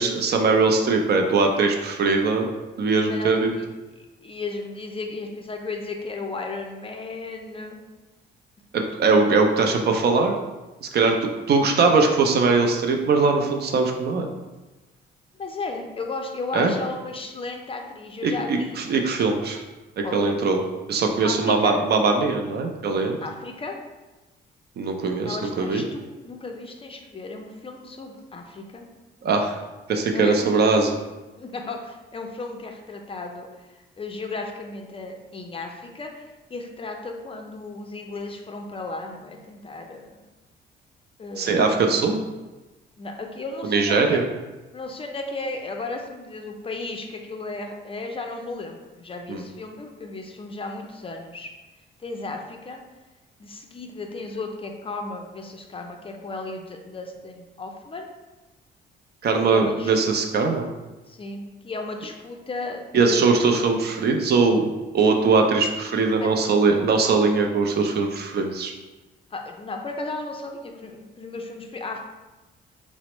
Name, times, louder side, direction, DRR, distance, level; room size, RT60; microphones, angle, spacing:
voice 1, 0.0-2.5 2.8-3.5 8.7-10.4 10.8-14.3 16.5-16.7 18.2-19.6 20.0-20.6 20.9-23.2 24.8-25.8 29.2-29.6 29.9-31.0 41.4-42.2 43.6-44.2 49.3-49.4 59.2-60.7 62.9-64.7 64.9-68.7, right 4 dB, 55° right, 3 dB, 0.5 m, -21 dB
voice 2, 3.1-3.7 4.2-7.8 15.4-19.0 20.0-20.4 21.2-21.8 23.2-23.8 25.2-28.9 30.1-30.5 31.4-33.5 34.0-40.2 41.2-41.7 43.0-44.2 44.7-51.5 52.0-52.8 53.4-58.1 59.5-59.9 61.1-63.6 66.2-66.3 69.3-72.0, left 3 dB, 30° left, 3 dB, 0.4 m, -34 dB
4.1 x 2.0 x 3.0 m, 1.1 s
cardioid pair, 90°, 20 cm